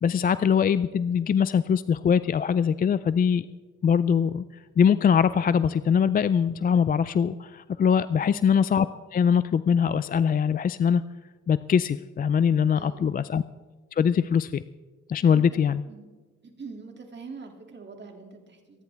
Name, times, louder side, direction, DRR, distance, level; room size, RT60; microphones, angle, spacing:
voice 1, 0.0-3.5 3.8-4.4 4.8-8.9 9.1-11.0 11.5-13.4 13.9-14.6 15.1-15.8, left 7 dB, 30° left, 15 dB, 0.4 m, -22 dB
voice 2, 8.2-8.5 12.7-13.3 15.3-15.6 15.8-16.1 16.4-18.8, right 4 dB, 35° right, 3 dB, 2.6 m, -44 dB
24.0 x 10.5 x 3.5 m, 1.3 s
cardioid pair, 90°, 30 cm